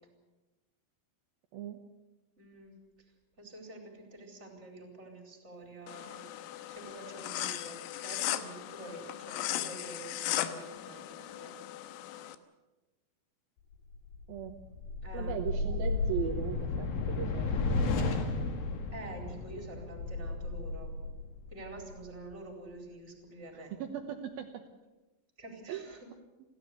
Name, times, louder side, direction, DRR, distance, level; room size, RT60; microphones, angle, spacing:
voice 1, 2.4-2.7 3.4-6.3 6.7-11.6 15.0-15.5 18.9-21.0 21.5-23.8 25.4-26.1, right 2 dB, 15° right, 3 dB, 4.1 m, -47 dB
sound 1, 5.9-12.4, left 13 dB, 85° left, 3.6 m, -37 dB
sound 2, 13.9-22.3, left 3 dB, 55° left, 3.0 m, -33 dB
voice 2, 15.1-18.5 23.5-24.5 25.7-25.8, right 9 dB, 80° right, 4 dB, 2.1 m, -38 dB
29.5 x 12.5 x 8.4 m, 1.1 s
omnidirectional pair, 5.9 m